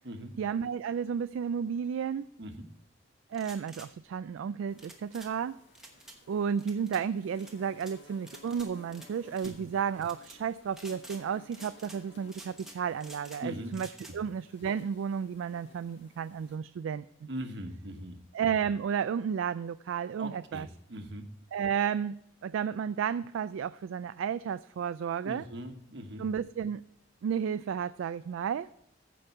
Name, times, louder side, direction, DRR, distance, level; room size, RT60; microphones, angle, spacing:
voice 1, 0.4-2.3 3.3-5.6 6.3-13.9 14.1-17.3 18.3-20.7 21.5-25.4 26.2-26.8 27.2-28.7, right 7 dB, 90° right, 14 dB, 0.3 m, -32 dB
sound 1, 3.3-3.9 4.8-5.3 5.7-6.2 6.6-7.0 7.4-8.0 8.3-9.1 9.3-9.6 10.0-10.4 10.7-11.2 11.5-12.0 12.3-13.4 13.7-14.2, right 1 dB, ahead, 1.0 m, -49 dB
sound 2, 4.7-16.6, left 3 dB, 65° left, 1.9 m, -58 dB
voice 2, 13.4-13.8 17.3-18.2 20.2-21.3 25.2-26.3, right 1 dB, 60° right, 6 dB, 1.2 m, -40 dB
14.5 x 5.3 x 4.4 m, 0.80 s
head